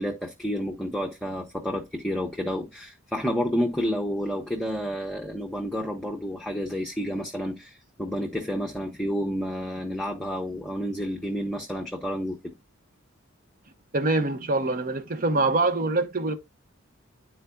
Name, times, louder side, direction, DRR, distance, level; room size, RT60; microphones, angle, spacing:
voice 1, 0.0-12.4, equal, 5° left, 0.8 m, -30 dB
voice 2, 13.9-16.4, right 2 dB, 45° right, 0.8 m, -24 dB
11.0 x 4.5 x 2.3 m
head